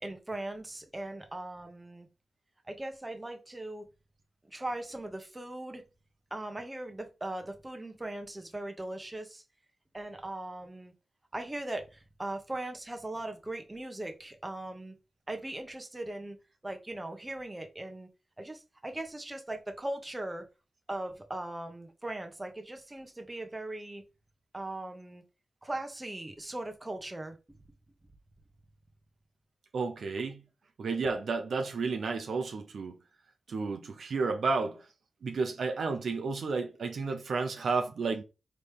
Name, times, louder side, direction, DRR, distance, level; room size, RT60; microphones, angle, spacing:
voice 1, 0.0-2.1 2.7-3.8 4.5-5.8 6.3-9.4 9.9-10.9 11.3-14.9 15.3-16.4 16.6-18.1 18.4-20.5 20.9-24.0 24.5-25.2 25.6-27.4, right 1 dB, 20° right, 1.2 m, -39 dB
voice 2, 29.7-30.4 30.8-33.0 33.5-34.8 35.2-38.2, right 4 dB, 75° right, 0.7 m, -32 dB
4.1 x 3.3 x 3.4 m
cardioid pair, 55°, 0 cm